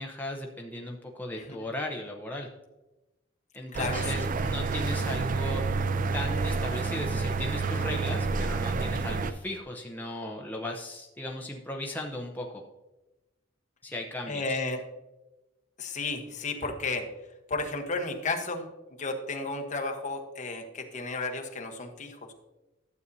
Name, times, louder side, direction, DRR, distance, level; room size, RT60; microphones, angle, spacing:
voice 1, 0.0-2.5 3.5-5.6 6.1-12.6 13.8-14.6, left 1 dB, 10° left, 0 dB, 0.7 m, -37 dB
voice 2, 3.7-4.3 14.3-14.8 15.8-17.1 17.5-18.7 19.0-22.3, left 3 dB, 40° left, 3 dB, 1.1 m, -33 dB
sound 1, 3.7-9.3, right 4 dB, 45° right, 0.4 m, -29 dB
12.0 x 8.0 x 2.7 m, 1.0 s
head